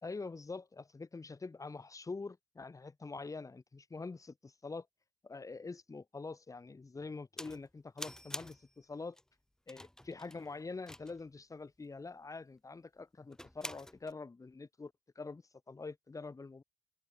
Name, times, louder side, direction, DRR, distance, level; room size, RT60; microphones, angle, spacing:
voice 1, 0.0-4.8 5.2-9.2 9.7-16.6, left 3 dB, 20° left, 1.8 m, -45 dB
sound 1, 7.4-7.7 8.0-8.7 9.2-9.3 9.7-11.3 13.3-14.1, left 1 dB, 5° left, 0.9 m, -47 dB
cardioid pair, 110°, 17 cm